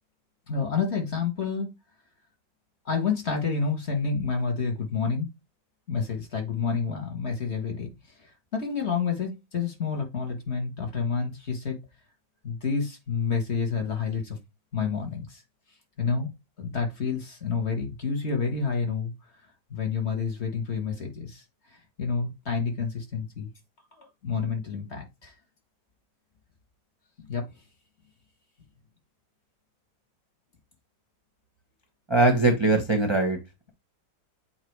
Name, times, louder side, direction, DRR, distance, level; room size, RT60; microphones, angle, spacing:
voice 1, 0.5-1.7 2.8-5.3 5.9-11.8 12.4-14.4 14.7-15.4 16.0-16.3 16.6-19.1 19.7-23.5 24.0-25.3 27.2-27.5, left 5 dB, 40° left, 1.5 m, -29 dB
voice 2, 32.1-33.4, right 2 dB, 25° right, 0.7 m, -21 dB
7.5 x 2.8 x 4.6 m
omnidirectional pair, 2.0 m